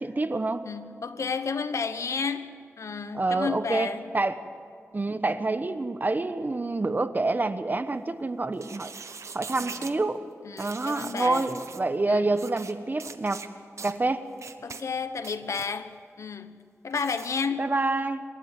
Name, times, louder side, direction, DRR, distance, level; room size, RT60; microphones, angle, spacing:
voice 1, 0.0-0.7 3.1-4.4 4.9-8.9 9.3-10.2 10.6-13.4 13.8-14.2 17.6-18.2, right 2 dB, 35° right, 1.1 m, -27 dB
voice 2, 0.7-4.1 9.6-9.9 10.4-11.5 12.1-12.3 14.6-17.8, left 5 dB, 85° left, 1.0 m, -32 dB
sound 1, 8.5-10.0 10.6-11.8 12.3-12.7 13.0-13.5 13.8-14.0 14.4-14.8 15.2-15.7 16.9-17.3, right 5 dB, 80° right, 1.1 m, -41 dB
27.5 x 12.5 x 9.2 m
wide cardioid pair, 85°, 5 cm